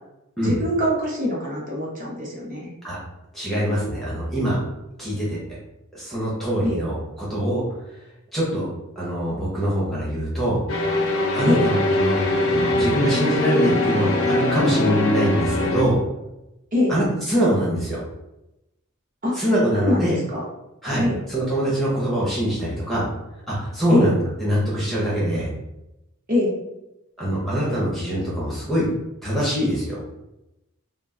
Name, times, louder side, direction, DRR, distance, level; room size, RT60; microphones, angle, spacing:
voice 1, 0.4-2.7 6.6-6.8 11.4-11.7 16.7-16.9 19.2-19.4 19.8-20.4 21.0-21.2 23.9-24.1 26.3-26.5, left 1 dB, 40° right, -4 dB, 0.8 m, -23 dB
voice 2, 3.3-4.6 5.0-5.4 5.9-7.6 8.3-8.7 9.0-10.6 11.3-12.1 12.5-16.0 16.9-18.0 19.3-20.2 20.8-23.1 23.5-25.5 27.2-28.9 29.2-30.0, equal, ahead, -7 dB, 0.6 m, -23 dB
sound 1, 10.7-15.8, left 1 dB, 75° left, 0.5 m, -22 dB
2.3 x 2.1 x 3.6 m, 0.93 s
head